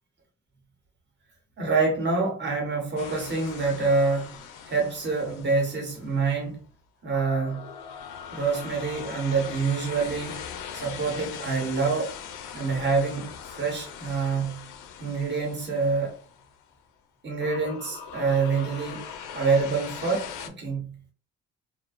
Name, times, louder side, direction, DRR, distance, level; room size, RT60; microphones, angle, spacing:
voice 1, 1.6-4.4 4.7-6.6 7.0-7.6 8.3-10.4 10.7-12.1 12.5-13.3 13.6-14.6 15.0-16.2 17.2-19.1 19.3-20.9, right 4 dB, 35° right, 1.0 m, -26 dB
sound 1, 3.0-6.3 7.1-16.7 17.4-20.5, left 7 dB, 90° left, 0.5 m, -41 dB
2.5 x 2.2 x 2.4 m
cardioid pair, 90°, 30 cm